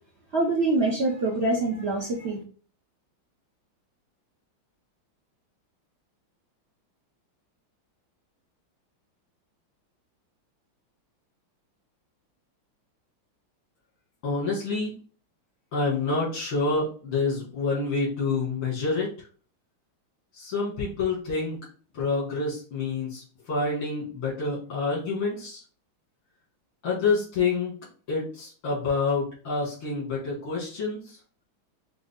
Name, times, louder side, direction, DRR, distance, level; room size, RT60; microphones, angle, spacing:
voice 1, 0.3-2.4, right 2 dB, 50° right, -2 dB, 0.7 m, -25 dB
voice 2, 14.2-14.9 15.7-19.1 20.4-21.6 21.9-23.2 23.5-25.6 26.8-27.7 28.1-31.2, left 4 dB, 85° left, -7 dB, 2.7 m, -27 dB
6.2 x 2.1 x 3.6 m, 0.40 s
omnidirectional pair, 2.3 m